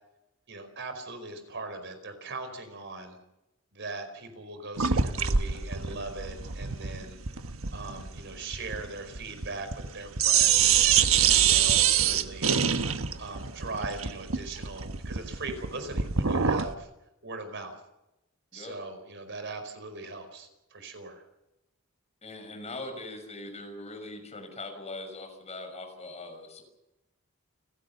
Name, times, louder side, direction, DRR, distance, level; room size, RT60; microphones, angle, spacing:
voice 1, 0.5-3.2 3.7-7.2 7.7-12.6 13.2-16.9 17.2-17.8 18.5-21.2, right 3 dB, 60° right, 8 dB, 4.8 m, -40 dB
sound 1, 4.8-9.9 10.2-16.7, right 8 dB, 80° right, 1.3 m, -25 dB
voice 2, 11.8-12.2 18.5-18.7 22.2-26.6, left 2 dB, 35° left, 5 dB, 6.0 m, -41 dB
29.5 x 16.5 x 6.9 m, 0.95 s
head